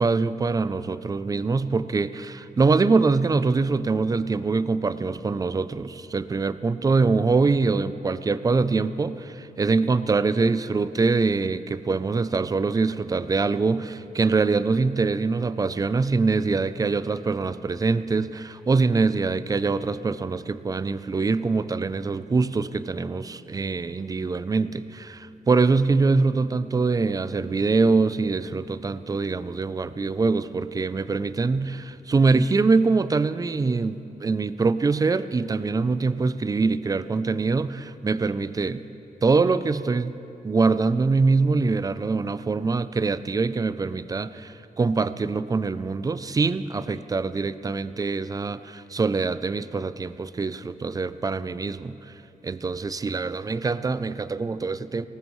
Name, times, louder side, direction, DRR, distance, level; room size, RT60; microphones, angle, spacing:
voice 1, 0.0-38.8 39.2-40.2 40.4-52.0 52.4-55.1, right 4 dB, 25° right, 14 dB, 0.4 m, -24 dB
19.0 x 18.5 x 3.1 m, 2.9 s
wide cardioid pair, 135°, 16 cm